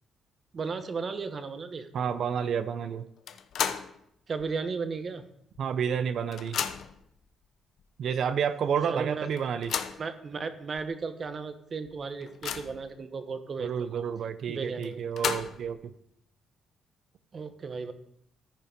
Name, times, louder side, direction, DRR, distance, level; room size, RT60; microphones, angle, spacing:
voice 1, 0.5-1.9 4.3-5.2 8.9-9.3 10.0-13.7 14.5-15.0 17.3-17.9, right 4 dB, 45° right, 9 dB, 1.1 m, -35 dB
voice 2, 1.9-3.0 5.6-6.6 8.0-9.7 13.6-15.8, right 7 dB, 65° right, 12 dB, 0.6 m, -30 dB
sound 1, 3.3-4.0 4.4-4.5 5.5-5.6 5.9-7.0 7.8-7.9 8.3-8.4 9.4-10.1 10.8-10.9 11.3-11.4 11.8-12.9 14.8-15.7, left 8 dB, 70° left, 0.7 m, -33 dB
14.0 x 5.5 x 5.1 m, 0.72 s
cardioid pair, 90°, 0 cm